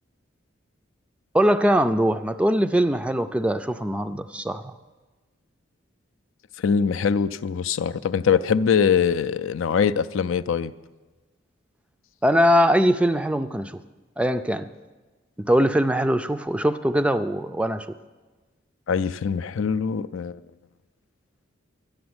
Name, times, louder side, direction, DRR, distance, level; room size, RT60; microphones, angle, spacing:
voice 1, 1.3-4.7 12.2-13.8 14.2-14.7 15.5-17.9, equal, 5° right, 10 dB, 0.3 m, -21 dB
voice 2, 6.6-10.7 18.9-20.4, left 6 dB, 75° left, 13 dB, 0.4 m, -23 dB
11.5 x 10.5 x 7.9 m, 1.3 s
head